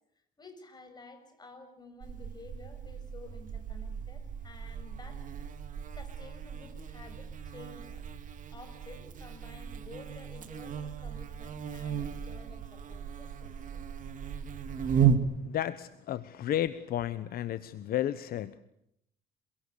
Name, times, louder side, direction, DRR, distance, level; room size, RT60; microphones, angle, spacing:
voice 1, 0.4-5.2 6.0-8.1 8.5-13.8, left 2 dB, 25° left, 7 dB, 6.8 m, -52 dB
Buzz, 2.0-15.2, right 8 dB, 50° right, 3.0 m, -35 dB
voice 2, 15.4-18.6, left 12 dB, 60° left, 14 dB, 1.1 m, -33 dB
28.0 x 23.5 x 6.9 m, 0.75 s
cardioid pair, 110°, 17 cm